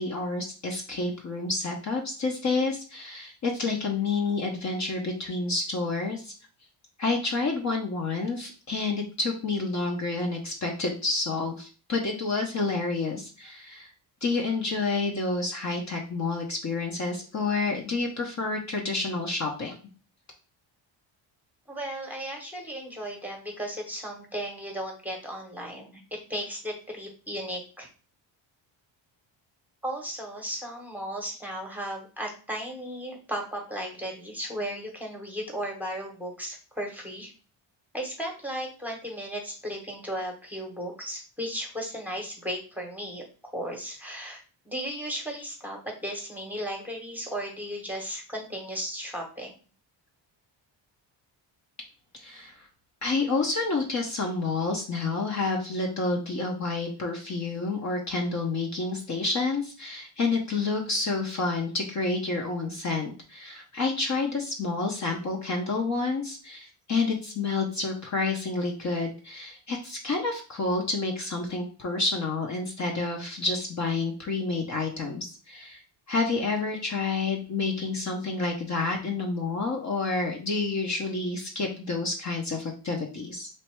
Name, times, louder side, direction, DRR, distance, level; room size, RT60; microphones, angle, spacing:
voice 1, 0.0-6.3 7.0-13.9 14.2-19.7 52.1-52.6 53.0-75.8 76.1-83.5, left 3 dB, 35° left, 1 dB, 0.8 m, -29 dB
voice 2, 21.7-27.9 29.8-37.3 37.9-43.3 43.5-49.5, equal, 5° right, 1 dB, 1.0 m, -35 dB
3.2 x 2.5 x 4.4 m, 0.37 s
cardioid pair, 135°, 46 cm